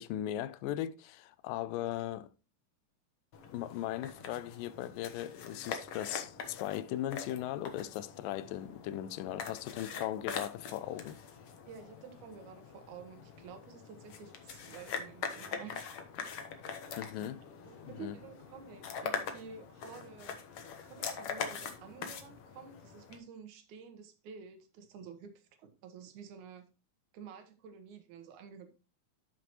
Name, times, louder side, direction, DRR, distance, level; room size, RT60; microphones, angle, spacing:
voice 1, 0.0-2.3 3.5-11.2 17.0-17.4 17.9-18.2, left 12 dB, 80° left, 2.1 m, -38 dB
sound 1, 3.3-23.2, left 6 dB, 65° left, 1.4 m, -43 dB
voice 2, 11.7-15.9 17.7-20.4 20.9-26.7 27.1-28.7, right 6 dB, 65° right, 2.4 m, -50 dB
12.5 x 5.8 x 3.0 m
omnidirectional pair, 4.2 m